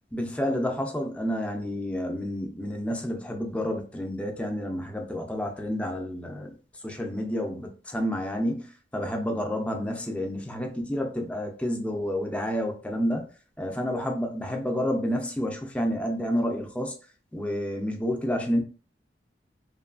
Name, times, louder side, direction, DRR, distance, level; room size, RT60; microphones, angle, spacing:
voice 1, 0.1-6.5 6.8-13.3 13.6-16.9 17.3-18.6, equal, 5° left, 2 dB, 0.4 m, -29 dB
3.0 x 2.2 x 2.4 m, 0.37 s
head